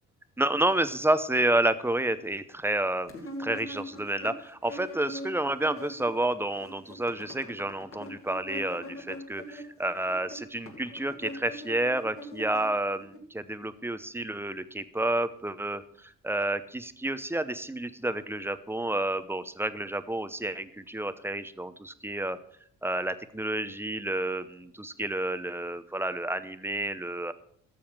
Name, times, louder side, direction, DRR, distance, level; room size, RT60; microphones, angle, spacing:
voice 1, 0.4-3.1 3.4-15.8 16.2-22.4 22.8-27.3, right 1 dB, 10° right, 13 dB, 0.7 m, -30 dB
sound 1, 3.1-6.2 6.5-13.2, left 1 dB, 45° left, 2.3 m, -42 dB
12.5 x 7.0 x 6.0 m, 0.64 s
cardioid pair, 90°, 30 cm